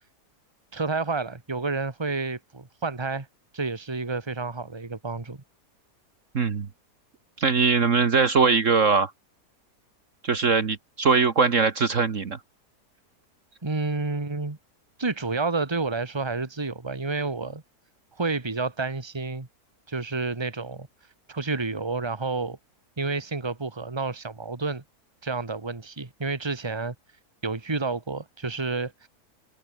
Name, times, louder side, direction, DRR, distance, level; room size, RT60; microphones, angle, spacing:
voice 1, 0.7-3.3 3.5-5.4 13.6-14.6 15.0-17.6 18.2-19.5 19.9-20.9 21.3-22.6 23.0-24.8 25.2-27.0 27.4-29.1, right 3 dB, 15° right, 1.8 m, -30 dB
voice 2, 6.3-6.7 7.4-9.1 10.2-12.4, right 5 dB, 50° right, 1.7 m, -21 dB
omnidirectional pair, 1.7 m